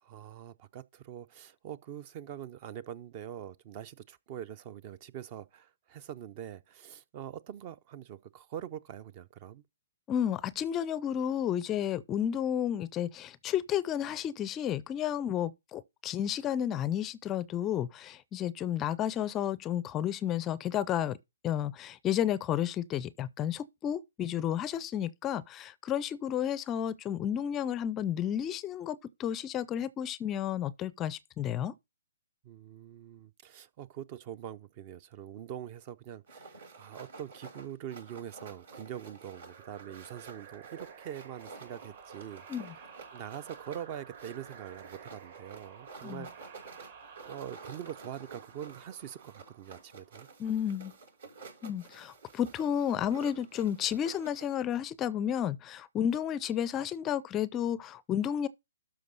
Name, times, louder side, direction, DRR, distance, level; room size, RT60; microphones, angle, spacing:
voice 1, 0.0-9.6 32.4-42.4 43.1-46.6 47.3-50.3, right 10 dB, 35° right, 0.5 m, -44 dB
voice 2, 10.1-21.2 21.4-31.7 42.5-42.7 46.0-46.3 50.4-50.9 51.6-58.5, left 10 dB, 20° left, 0.4 m, -32 dB
sound 1, 36.3-54.5, right 4 dB, 75° right, 6.2 m, -51 dB
sound 2, 39.3-50.6, right 6 dB, 55° right, 2.5 m, -52 dB
12.5 x 4.8 x 4.0 m
hypercardioid pair, 135°, 0 cm